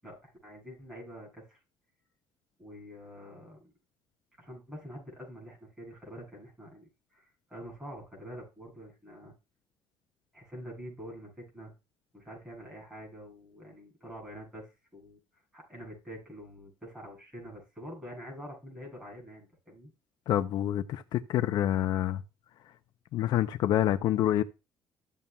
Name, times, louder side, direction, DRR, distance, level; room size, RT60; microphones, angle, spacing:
voice 1, 0.0-1.6 2.6-3.7 4.4-9.3 10.3-11.7 12.1-15.2 15.5-19.9, equal, 5° right, 6.4 m, -46 dB
voice 2, 20.3-22.2 23.1-24.4, left 12 dB, 65° left, 0.5 m, -27 dB
14.0 x 7.2 x 2.2 m
cardioid pair, 165°, 8 cm